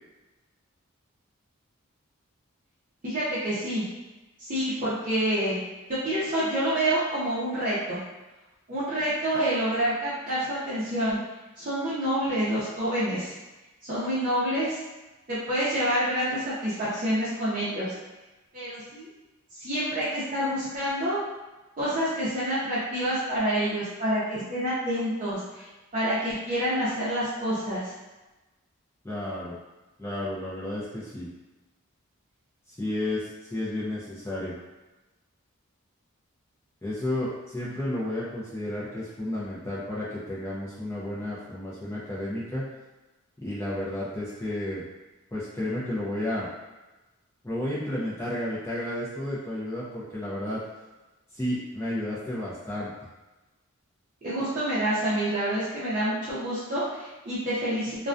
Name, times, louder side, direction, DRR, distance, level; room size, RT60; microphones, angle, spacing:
voice 1, 3.0-3.8 4.4-5.6 5.9-8.0 8.7-11.2 11.6-13.3 13.8-14.8 15.3-17.9 18.5-19.1 19.5-21.2 21.8-25.7 25.9-27.9 54.2-58.1, right 1 dB, 40° right, -11 dB, 0.5 m, -27 dB
voice 2, 29.0-29.5 30.0-31.3 32.7-34.6 36.8-42.6 43.4-44.8 45.3-46.5 47.4-50.6 51.3-52.9, left 1 dB, 15° left, -8 dB, 0.4 m, -32 dB
2.2 x 2.2 x 2.5 m, 1.1 s
head